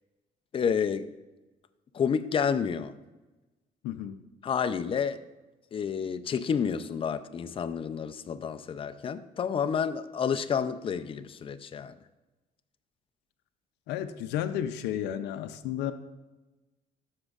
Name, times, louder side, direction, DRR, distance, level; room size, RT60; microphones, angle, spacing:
voice 1, 0.5-1.1 1.9-2.9 4.4-5.2 5.7-12.0, left 7 dB, 30° left, 11 dB, 0.5 m, -30 dB
voice 2, 3.8-4.2 13.9-15.9, left 10 dB, 85° left, 9 dB, 0.5 m, -32 dB
13.0 x 6.2 x 2.4 m, 1.1 s
cardioid pair, 110°, 17 cm